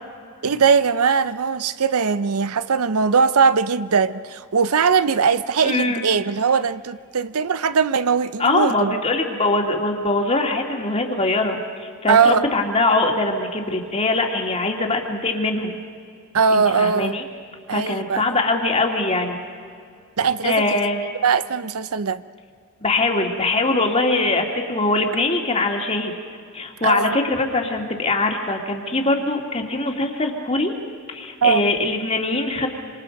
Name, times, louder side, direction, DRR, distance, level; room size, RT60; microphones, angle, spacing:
voice 1, 0.4-9.0 12.1-12.5 16.3-17.2 17.7-18.2 20.2-20.6 21.2-22.2 26.8-27.2 31.4-31.6, right 5 dB, 80° right, 0.7 m, -20 dB
voice 2, 5.6-6.0 8.4-15.8 16.5-17.2 17.7-19.4 20.4-21.1 22.8-26.1 26.5-30.7 31.1-32.7, left 2 dB, 30° left, 2.3 m, -22 dB
27.0 x 26.5 x 5.3 m
head